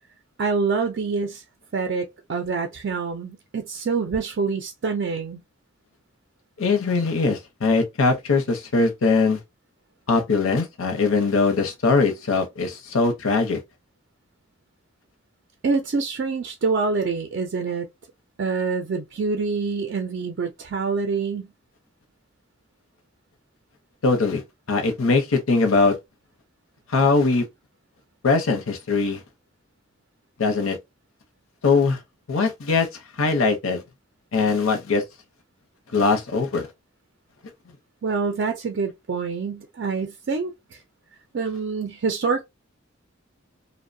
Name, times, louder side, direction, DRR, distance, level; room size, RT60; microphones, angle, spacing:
voice 1, 0.4-1.4 1.7-5.4 15.6-17.9 18.4-21.5 38.0-40.8 41.3-42.4, right 4 dB, 55° right, 0.4 m, -26 dB
voice 2, 6.6-9.4 10.1-13.6 24.0-24.4 24.7-26.0 26.9-27.4 28.2-29.2 30.4-30.8 31.6-32.0 32.3-32.9 33.2-33.8 34.3-35.0 35.9-36.7, left 4 dB, 80° left, 0.7 m, -21 dB
2.6 x 2.1 x 2.5 m
head